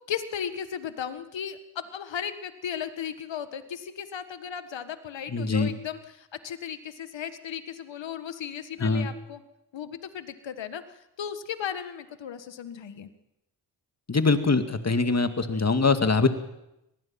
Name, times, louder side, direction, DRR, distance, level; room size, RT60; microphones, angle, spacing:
voice 1, 0.0-9.4 9.7-10.8 11.2-13.1, left 8 dB, 75° left, 11 dB, 1.7 m, -36 dB
voice 2, 5.3-5.7 8.8-9.1 14.1-16.3, left 4 dB, 35° left, 8 dB, 2.2 m, -23 dB
24.5 x 19.0 x 5.9 m, 0.89 s
cardioid pair, 50°, 45 cm